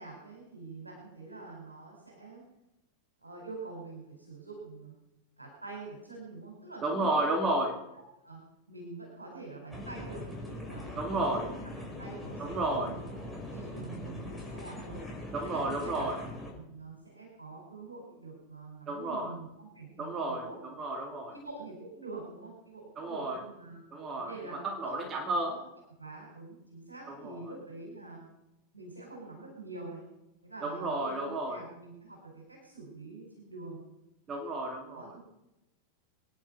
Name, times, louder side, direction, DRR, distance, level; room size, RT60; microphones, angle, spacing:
voice 1, 0.0-2.4 3.2-4.9 5.4-7.2 8.2-8.4 8.7-11.7 12.0-13.0 13.5-15.0 15.5-16.1 16.6-20.6 21.3-23.8 24.2-25.6 26.0-28.3 28.7-30.0 30.4-33.8 34.9-35.2, right 3 dB, 80° right, -1 dB, 4.8 m, -45 dB
voice 2, 6.8-7.8 10.9-11.5 12.4-12.9 15.3-16.2 18.9-19.3 20.0-21.3 23.0-23.4 23.9-25.5 27.1-27.5 30.6-31.6 34.3-35.1, right 2 dB, 25° right, 2 dB, 2.7 m, -32 dB
sound 1, 9.7-16.5, left 1 dB, ahead, 5.3 m, -41 dB
24.0 x 10.5 x 5.5 m, 0.94 s
figure-of-eight pair, 90°, 0 cm